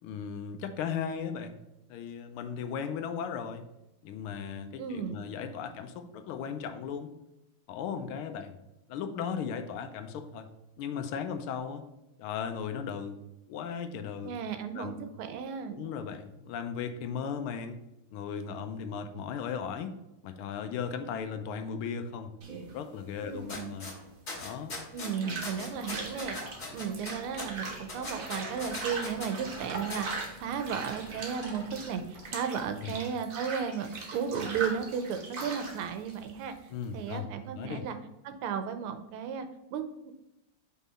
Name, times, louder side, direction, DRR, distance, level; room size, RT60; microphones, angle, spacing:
voice 1, 0.0-1.6 1.9-3.6 4.0-7.1 7.7-8.5 8.9-10.5 10.8-11.8 12.2-13.2 13.5-14.3 14.7-14.9 15.7-17.8 18.1-19.9 20.2-22.4 22.7-23.9 24.3-24.8 32.8-32.9 36.7-37.3 37.5-37.9, left 7 dB, 85° left, 8 dB, 1.5 m, -36 dB
voice 2, 4.8-5.2 14.2-15.7 23.2-23.7 24.9-26.4 26.7-36.5 36.9-38.0 38.2-39.5 39.7-40.1, right 7 dB, 85° right, 8 dB, 1.6 m, -34 dB
sound 1, 22.4-37.2, right 3 dB, 50° right, 1.2 m, -41 dB
sound 2, 23.5-23.9 24.3-25.1 25.4-29.3 29.9-30.0, left 2 dB, 45° left, 2.3 m, -39 dB
sound 3, 25.7-32.3, right 1 dB, 10° right, 1.4 m, -47 dB
5.6 x 4.0 x 4.2 m, 0.93 s
omnidirectional pair, 2.4 m